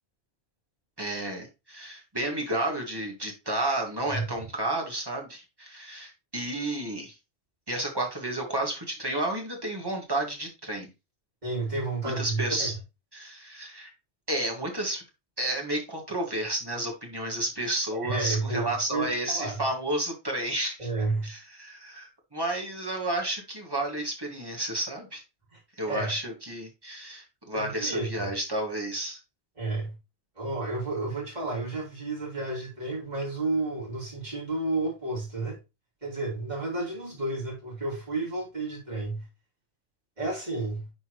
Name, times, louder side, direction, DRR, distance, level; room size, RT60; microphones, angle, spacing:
voice 1, 1.0-7.2 7.7-10.9 12.2-12.7 13.1-13.9 14.3-15.0 15.4-20.9 21.2-25.2 25.8-29.2, right 1 dB, 20° right, 2.1 m, -31 dB
voice 2, 11.4-12.7 17.9-19.6 20.8-21.3 25.5-25.6 25.8-26.1 27.5-28.3 29.6-29.9 30.4-35.6 36.0-39.3 40.2-40.9, right 2 dB, 40° right, 3.1 m, -31 dB
10.0 x 4.4 x 3.1 m
omnidirectional pair, 1.1 m